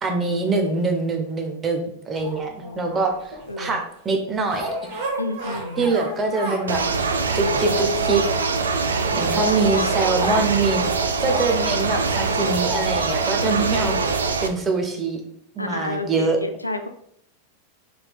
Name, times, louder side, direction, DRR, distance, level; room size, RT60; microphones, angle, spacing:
voice 1, 0.0-2.5 2.8-4.7 5.8-7.1 7.3-8.2 9.1-10.8 11.2-15.2 15.6-16.4, right 3 dB, 20° right, 3 dB, 0.7 m, -24 dB
sound 1, 2.1-3.5 4.4-6.8 7.1-8.6 9.0-12.9 13.5-13.6, right 1 dB, 50° right, 1.0 m, -33 dB
voice 2, 2.6-3.0 3.5-3.8 5.2-5.9 8.7-9.0 9.3-10.0 13.7-14.1 15.6-16.9, left 1 dB, 85° left, 7 dB, 0.3 m, -31 dB
sound 2, 6.7-14.5, right 4 dB, 70° right, 0.3 m, -23 dB
4.2 x 3.3 x 2.3 m, 0.72 s
figure-of-eight pair, 90°, 0 cm